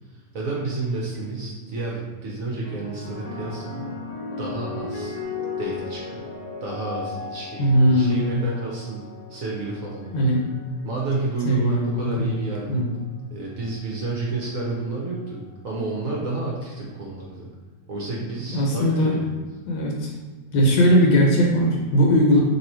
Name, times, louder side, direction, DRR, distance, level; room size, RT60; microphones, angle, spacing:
voice 1, 0.3-3.9 4.4-5.2 5.6-6.3 6.6-10.2 10.8-12.8 13.3-17.5 17.9-19.4, right 3 dB, 60° right, -3 dB, 0.9 m, -30 dB
sound 1, 2.6-11.2 12.1-12.5, left 4 dB, 60° left, 1.1 m, -36 dB
voice 2, 7.6-8.4 10.1-10.4 11.4-12.4 12.7-12.9 18.5-19.2 19.7-20.1 20.5-22.4, equal, 75° left, -1 dB, 1.4 m, -19 dB
3.0 x 2.8 x 4.3 m, 1.4 s
omnidirectional pair, 2.1 m